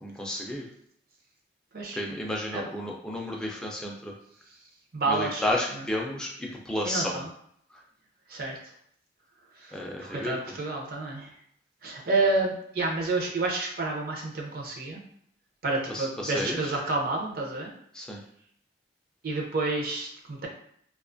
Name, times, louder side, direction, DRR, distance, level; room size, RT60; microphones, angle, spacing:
voice 1, 0.0-0.7 1.9-4.1 5.1-7.2 9.7-10.4 15.9-16.8 17.9-18.2, left 1 dB, 5° left, -2 dB, 0.3 m, -32 dB
voice 2, 4.9-5.4 5.7-5.8 6.8-7.3 8.3-8.6 9.6-11.3 11.8-15.0 15.6-17.7 19.2-20.5, right 3 dB, 55° right, -1 dB, 0.5 m, -29 dB
2.4 x 2.3 x 2.5 m, 0.68 s
head